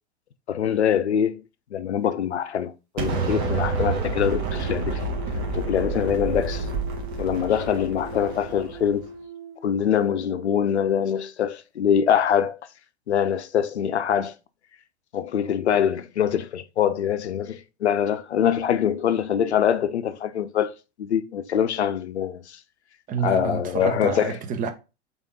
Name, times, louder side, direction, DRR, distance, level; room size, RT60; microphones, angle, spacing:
voice 1, 0.5-1.4 1.7-5.0 5.5-6.7 7.2-9.1 9.6-12.6 13.1-14.3 15.1-20.7 21.0-22.6 23.2-24.3, left 9 dB, 80° left, 0.5 m, -24 dB
Explosion, 3.0-9.0, right 4 dB, 45° right, 1.2 m, -29 dB
sound 1, 3.1-10.4, right 1 dB, 80° right, 1.2 m, -39 dB
voice 2, 23.1-24.7, right 6 dB, 25° right, 0.6 m, -28 dB
3.7 x 3.6 x 3.6 m
figure-of-eight pair, 95°, 33 cm